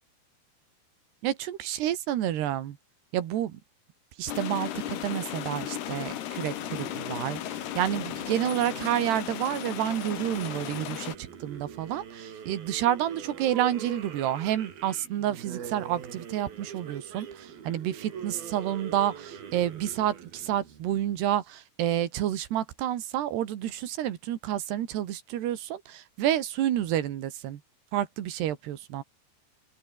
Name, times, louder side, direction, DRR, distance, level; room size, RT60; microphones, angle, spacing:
voice 1, 1.2-2.8 3.1-3.6 4.2-27.6 27.9-29.0, right 12 dB, 85° right, 3.9 m, -29 dB
traffic japandiesel, 4.3-11.2, left 11 dB, 80° left, 3.9 m, -35 dB
sound 1, 6.6-21.5, right 7 dB, 65° right, 5.0 m, -43 dB
open air
omnidirectional pair, 4.6 m